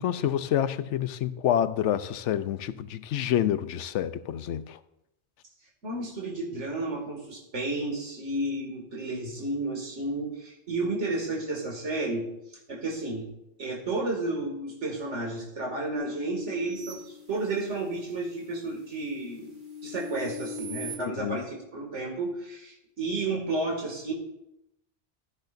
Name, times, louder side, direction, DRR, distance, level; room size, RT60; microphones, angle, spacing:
voice 1, 0.0-4.8 21.0-21.4, left 10 dB, 85° left, 0.9 m, -28 dB
voice 2, 5.8-12.3 12.7-13.3 13.6-19.5 19.8-24.1, right 2 dB, 85° right, 2.5 m, -32 dB
sound 1, 15.9-17.9 18.4-21.0, left 3 dB, 45° right, 1.9 m, -40 dB
14.5 x 9.8 x 2.6 m
omnidirectional pair, 1.2 m